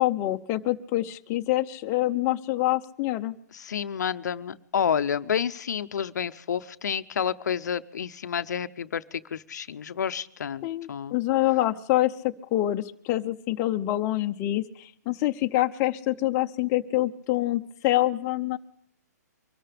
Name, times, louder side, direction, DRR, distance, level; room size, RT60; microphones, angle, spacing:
voice 1, 0.0-3.3 10.6-18.6, left 16 dB, 25° left, 5 dB, 0.7 m, -26 dB
voice 2, 3.5-11.2, left 8 dB, 75° left, 12 dB, 0.7 m, -29 dB
24.0 x 13.5 x 3.4 m, 0.69 s
hypercardioid pair, 150°, 9 cm